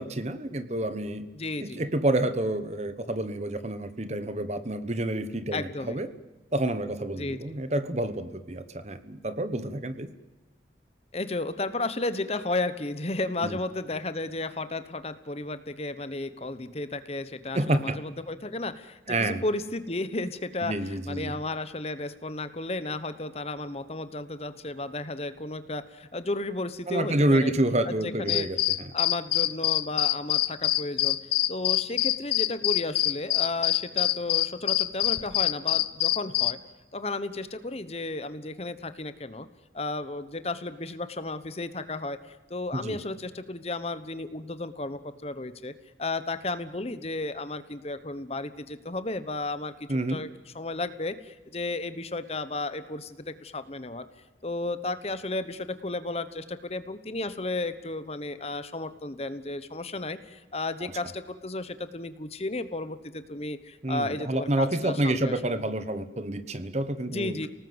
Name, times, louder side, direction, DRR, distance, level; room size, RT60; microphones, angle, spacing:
voice 1, 0.0-1.3 1.6-6.1 6.5-10.1 13.4-13.5 17.5-18.0 19.1-19.4 20.6-21.4 26.9-28.9 42.7-43.0 49.9-50.2 63.8-67.5, right 1 dB, 35° right, 12 dB, 1.1 m, -28 dB
voice 2, 1.3-1.9 5.5-6.0 7.1-7.4 11.1-27.5 27.8-28.5 28.9-31.2 31.5-36.6 36.9-39.5 39.7-45.7 46.0-50.3 50.5-54.0 54.4-65.3 67.1-67.5, left 2 dB, 35° left, 12 dB, 1.1 m, -33 dB
sound 1, 28.3-36.5, left 15 dB, 60° left, 0.7 m, -25 dB
29.0 x 18.5 x 8.0 m, 1.2 s
head